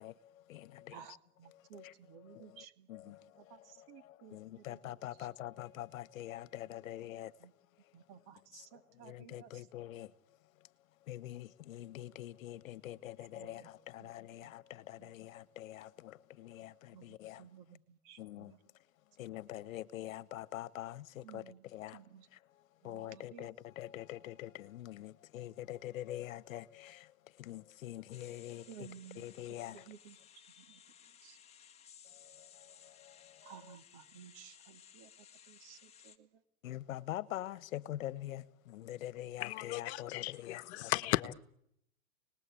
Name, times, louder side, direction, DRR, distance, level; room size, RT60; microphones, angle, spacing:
voice 1, 0.0-1.0 1.5-7.4 7.8-7.9 8.5-8.7 8.9-10.1 10.6-10.7 11.0-17.5 18.2-18.5 19.2-22.0 22.5-28.9 29.1-29.8 32.0-33.5 36.6-40.9, left 13 dB, 65° left, 1.5 m, -45 dB
voice 2, 0.9-5.3 7.4-7.5 7.9-9.7 13.3-13.7 14.0-14.5 15.0-15.1 16.9-18.6 21.2-21.6 21.9-22.3 22.8-23.5 28.7-29.3 29.7-30.2 30.6-31.4 33.4-36.4, right 8 dB, 40° right, 2.5 m, -56 dB
sound 1, 28.1-36.2, left 8 dB, 15° left, 1.7 m, -59 dB
voice 3, 39.4-41.3, left 17 dB, 45° left, 1.5 m, -36 dB
29.5 x 20.0 x 8.6 m
hypercardioid pair, 145°, 44 cm